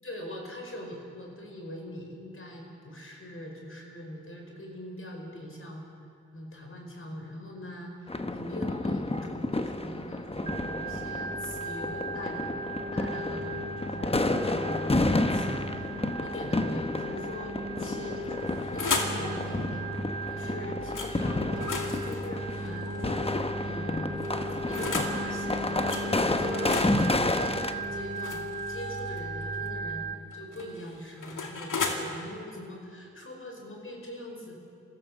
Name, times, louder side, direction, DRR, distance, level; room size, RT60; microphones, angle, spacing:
voice 1, 0.0-5.8 6.3-12.5 12.9-19.9 20.3-22.9 23.5-24.4 24.6-26.8 27.1-28.4 28.7-30.0 30.3-34.6, equal, 45° left, 1 dB, 4.8 m, -42 dB
sound 1, 8.1-27.7, left 2 dB, 20° left, 0.9 m, -31 dB
Organ, 10.5-30.1, right 1 dB, 25° right, 2.2 m, -36 dB
sound 2, 18.2-19.2 20.9-21.1 21.5-23.4 24.2-25.2 25.9-26.1 26.5-29.2 30.3-32.0, left 4 dB, 85° left, 2.2 m, -35 dB
24.5 x 15.5 x 7.3 m, 2.5 s
wide cardioid pair, 80°, 31 cm